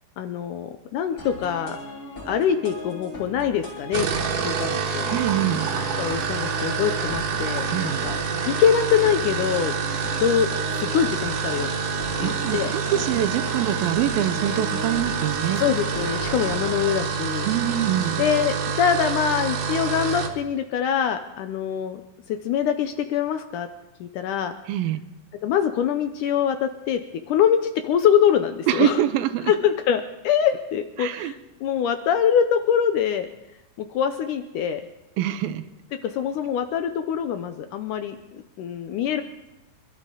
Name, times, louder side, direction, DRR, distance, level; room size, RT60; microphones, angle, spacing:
voice 1, 0.2-1.8 2.3-4.1 4.4-5.1 6.0-8.2 8.5-9.7 10.2-11.7 12.2-12.7 15.6-17.5 18.2-22.0 22.3-23.7 24.0-24.5 25.4-27.0 27.3-29.0 29.5-33.3 33.8-34.8 36.0-39.2, left 8 dB, 75° left, 8 dB, 2.0 m, -24 dB
sound 1, 1.2-16.9, left 1 dB, 25° left, 4.0 m, -38 dB
sound 2, 3.8-20.4, right 6 dB, 65° right, 2.7 m, -27 dB
voice 2, 5.1-5.7 7.7-8.0 12.2-15.6 17.4-18.2 24.7-25.0 28.7-29.5 31.0-31.3 35.2-35.6, right 12 dB, 85° right, 11 dB, 2.5 m, -24 dB
26.0 x 12.5 x 3.8 m, 0.95 s
omnidirectional pair, 4.2 m